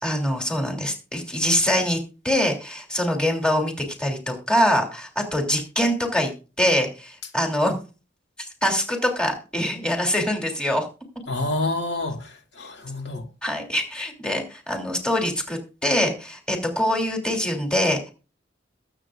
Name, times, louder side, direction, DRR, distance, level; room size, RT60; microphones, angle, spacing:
voice 1, 0.0-3.7 4.0-6.3 6.6-7.8 8.4-10.9 13.4-18.1, left 1 dB, 5° left, 3.0 m, -24 dB
voice 2, 11.3-13.3, left 2 dB, 65° left, 2.4 m, -28 dB
21.5 x 7.9 x 2.5 m
head